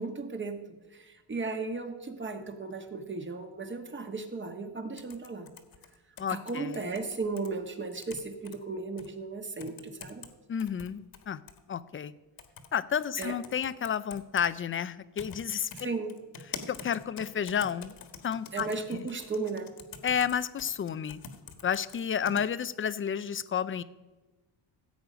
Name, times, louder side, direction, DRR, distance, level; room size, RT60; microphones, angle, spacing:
voice 1, 0.0-5.5 6.3-10.2 13.2-13.4 15.8-16.2 18.5-19.7, right 3 dB, 25° right, 6 dB, 1.4 m, -36 dB
sound 1, 5.0-7.5 7.9-8.6 9.0-9.1 9.6-10.3 10.6-11.6 12.4-12.7 12.9-14.5 15.2-15.4 15.7-22.4, left 6 dB, 50° left, 1.5 m, -45 dB
voice 2, 6.2-6.8 10.5-11.4 11.7-12.1 12.7-15.7 16.7-17.9 18.2-19.1 20.0-21.2 21.6-23.8, left 8 dB, 30° left, 15 dB, 0.5 m, -31 dB
15.5 x 8.2 x 5.1 m, 1.2 s
cardioid pair, 115°, 46 cm